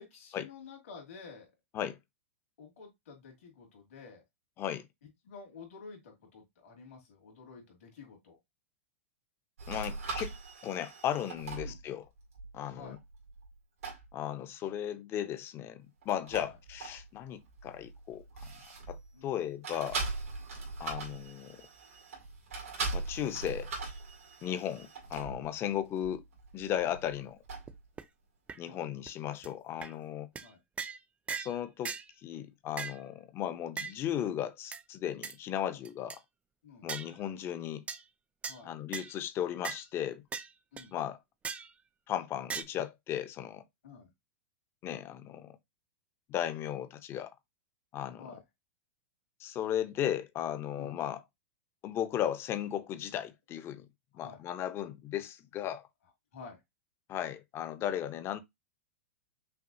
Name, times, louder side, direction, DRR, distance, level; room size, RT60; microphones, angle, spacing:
voice 1, 0.0-1.5 2.6-4.2 5.2-8.4 11.5-11.8 12.7-13.0 16.3-16.5 19.1-19.3 20.5-20.7 24.4-24.6 25.6-25.8 28.6-28.8 30.4-30.6 36.6-36.9 38.5-38.7 40.7-40.9 43.8-44.1 48.2-48.4 50.8-50.9 54.1-54.4 56.3-56.6, left 5 dB, 75° left, 2.3 m, -50 dB
sound 1, 9.6-13.6 13.8-14.1 16.0-19.3 19.6-27.9, right 3 dB, 90° right, 2.0 m, -41 dB
voice 2, 9.7-10.3 10.6-12.1 12.5-13.0 14.1-18.2 18.9-19.0 19.2-20.0 20.8-21.6 22.9-23.7 24.4-26.2 26.5-27.4 28.6-30.3 31.3-31.9 32.2-36.2 36.8-37.8 38.6-40.2 40.9-41.2 42.1-43.6 44.8-45.6 46.3-47.3 47.9-48.2 49.4-51.2 51.8-53.9 54.1-55.8 57.1-58.4, left 10 dB, 35° left, 0.7 m, -36 dB
sound 2, 27.7-27.8 28.0-28.1 28.5-28.6 29.1-29.2 29.4-29.5 29.8-29.9 30.4-30.5 30.8-31.0 31.3-31.6 31.8-32.1 32.8-33.0 33.8-34.0 34.7-34.8 35.2-35.3 35.8-36.2 36.9-37.1 37.9-38.0 38.4-38.6 38.9-39.1 39.6-39.8 40.3-40.5 40.8-40.9 41.4-41.7 42.5-42.6, right 6 dB, 15° right, 0.5 m, -38 dB
5.7 x 2.4 x 2.7 m
hypercardioid pair, 120°, 7 cm